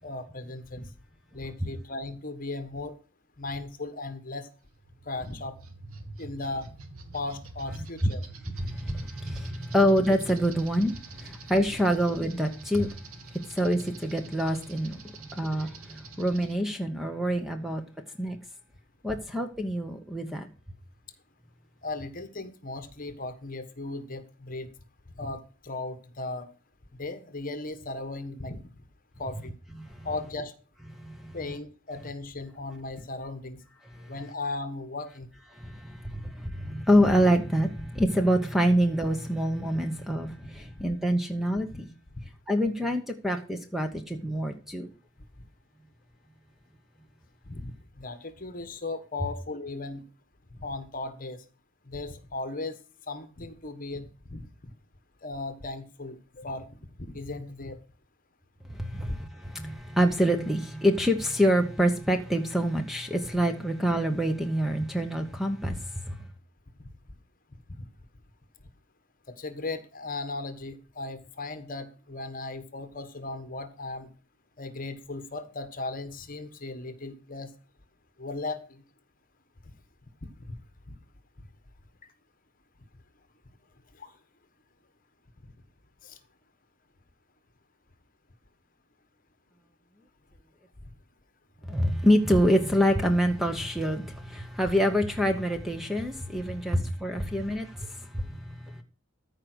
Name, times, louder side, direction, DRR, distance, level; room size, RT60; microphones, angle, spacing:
voice 1, 0.0-0.9 1.3-3.0 3.4-4.5 5.0-5.5 6.2-6.7 7.1-8.3 19.1-19.2 21.8-24.7 25.1-26.5 26.9-28.6 29.2-29.6 30.0-30.5 31.3-33.6 34.1-35.3 40.7-40.9 41.7-41.8 47.4-50.0 50.5-51.4 51.8-52.8 53.1-54.4 55.2-56.7 57.0-57.8 59.1-59.2 67.7-67.9 69.3-74.1 74.6-77.5 78.2-78.8 80.2-80.6 80.9-81.0 83.9-84.1 86.0-86.2 96.7-96.8, left 2 dB, 40° left, 1.4 m, -37 dB
Roto Chopper, 4.7-16.6, right 3 dB, 80° right, 1.9 m, -46 dB
voice 2, 8.6-13.0 13.5-15.0 15.3-17.8 18.2-18.4 19.0-20.5 31.1-31.2 35.6-41.9 42.5-44.9 58.8-66.2 91.7-98.3, equal, ahead, 0.9 m, -26 dB
14.0 x 5.0 x 6.2 m
head